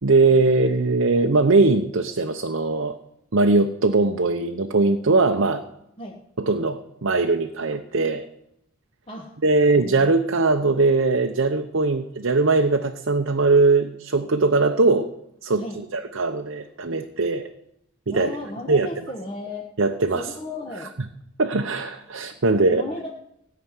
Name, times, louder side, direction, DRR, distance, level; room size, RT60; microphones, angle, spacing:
voice 1, 0.0-2.9 3.3-5.6 6.4-8.2 9.4-15.1 15.4-15.6 15.9-17.5 18.1-18.4 18.7-18.9 19.8-20.3 21.4-22.8, right 3 dB, 65° right, 6 dB, 0.8 m, -20 dB
voice 2, 9.7-10.1 15.6-15.8 18.1-19.7 20.2-20.9 22.5-23.1, left 2 dB, 25° left, -1 dB, 1.4 m, -35 dB
17.0 x 5.9 x 9.7 m, 0.79 s
head